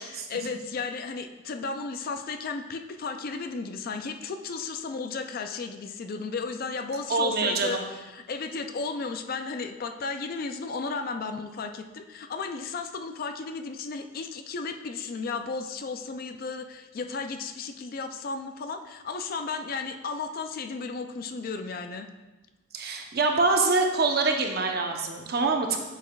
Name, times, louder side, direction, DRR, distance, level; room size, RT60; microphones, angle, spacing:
voice 1, 0.0-22.1, left 4 dB, 45° left, 7 dB, 0.4 m, -34 dB
voice 2, 7.1-7.8 22.7-25.8, right 3 dB, 45° right, 3 dB, 0.8 m, -25 dB
8.5 x 7.0 x 2.3 m, 1.2 s
head